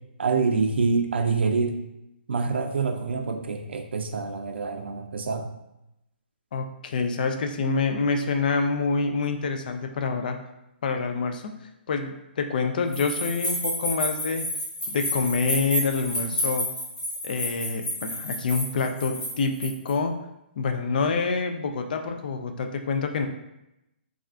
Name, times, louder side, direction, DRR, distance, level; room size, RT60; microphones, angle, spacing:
voice 1, 0.2-1.8 2.3-5.5, right 4 dB, 80° right, 6 dB, 0.4 m, -26 dB
voice 2, 6.5-10.4 10.8-11.6 11.9-14.4 14.9-16.7 17.2-20.2 20.6-23.3, left 4 dB, 50° left, 5 dB, 0.3 m, -27 dB
sound 1, 12.9-19.9, equal, 35° left, 1.2 m, -30 dB
3.4 x 2.4 x 2.4 m, 0.89 s
hypercardioid pair, 160°, 6 cm